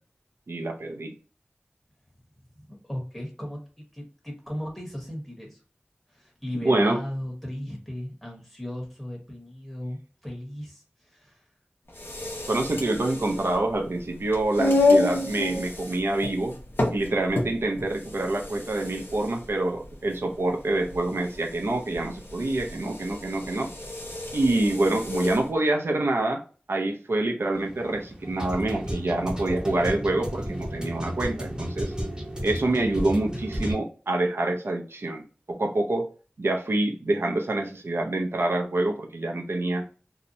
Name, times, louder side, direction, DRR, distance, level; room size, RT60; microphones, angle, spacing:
voice 1, 0.5-1.1 6.6-7.0 12.5-16.5 16.9-23.7 24.3-26.4 26.7-31.9 32.4-36.1 36.4-39.8, right 2 dB, 80° right, 2 dB, 0.5 m, -26 dB
voice 2, 2.5-5.6 6.1-11.5, equal, 5° left, -1 dB, 1.1 m, -37 dB
sound 1, 11.9-25.5, left 2 dB, 65° left, 0.7 m, -29 dB
sound 2, 27.5-33.7, equal, 20° right, 0.8 m, -33 dB
2.7 x 2.1 x 2.6 m, 0.37 s
wide cardioid pair, 60°, 4 cm